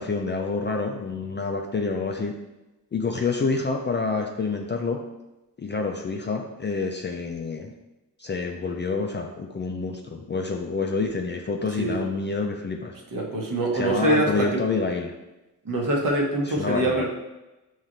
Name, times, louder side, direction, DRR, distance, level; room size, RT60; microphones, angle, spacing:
voice 1, 0.0-2.3 2.9-5.0 5.6-7.7 8.2-12.9 13.7-15.1 16.6-17.1, left 4 dB, 30° left, 2 dB, 0.4 m, -28 dB
voice 2, 13.1-14.5 15.6-17.1, right 1 dB, 50° right, 0 dB, 1.0 m, -24 dB
5.6 x 3.1 x 2.6 m, 1.0 s
cardioid pair, 80°, 40 cm